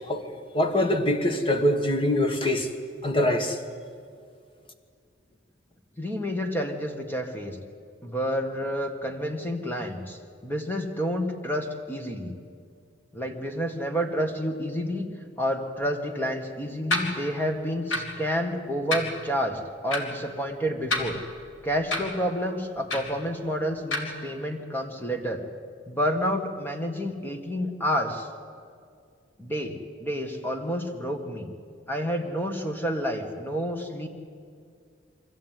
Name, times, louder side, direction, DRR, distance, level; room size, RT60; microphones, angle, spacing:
voice 1, 0.5-2.7 3.0-3.6, left 1 dB, 25° left, 6 dB, 1.5 m, -23 dB
voice 2, 6.0-7.6 8.0-12.3 13.1-15.1 15.4-21.2 21.6-25.4 25.9-28.3 29.4-31.5 31.9-34.1, equal, 10° left, 4 dB, 1.7 m, -29 dB
sound 1, 16.9-17.1 17.9-18.1 18.9-19.1 19.9-20.0 20.8-21.4 21.9-22.1 22.9-23.1 23.9-24.0, left 2 dB, 80° left, 2.9 m, -27 dB
24.5 x 14.5 x 9.2 m, 2.2 s
head